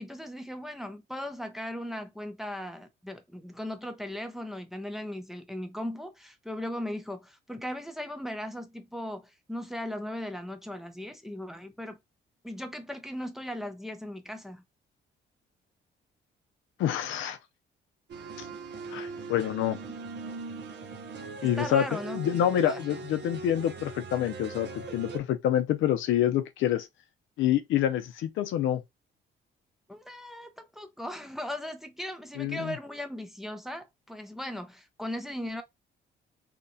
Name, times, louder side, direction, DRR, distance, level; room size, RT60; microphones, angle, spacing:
voice 1, 0.0-12.0 12.4-14.6 21.4-22.4 22.6-22.8 29.9-35.6, left 1 dB, ahead, 0.5 m, -38 dB
voice 2, 16.8-17.4 18.4-18.5 18.9-19.8 21.4-21.8 22.1-26.9 27.4-28.8 32.4-32.7, left 11 dB, 80° left, 0.5 m, -27 dB
sound 1, 18.1-25.2, right 4 dB, 60° right, 0.6 m, -40 dB
2.8 x 2.1 x 2.6 m
cardioid pair, 90°, 20 cm